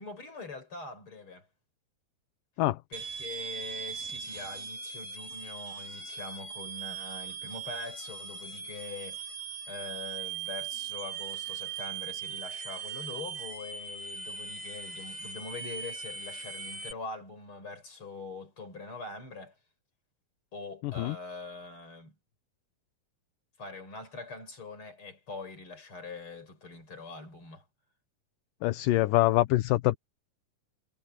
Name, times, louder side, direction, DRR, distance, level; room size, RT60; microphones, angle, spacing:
voice 1, 0.0-1.5 2.9-9.2 9.7-19.5 20.5-22.1 23.6-27.6, left 3 dB, 35° left, 6.6 m, -43 dB
sound 1, 2.9-16.9, right 6 dB, 85° right, 5.0 m, -39 dB
voice 2, 20.8-21.2 28.6-30.0, left 17 dB, 75° left, 2.3 m, -25 dB
omnidirectional pair, 4.1 m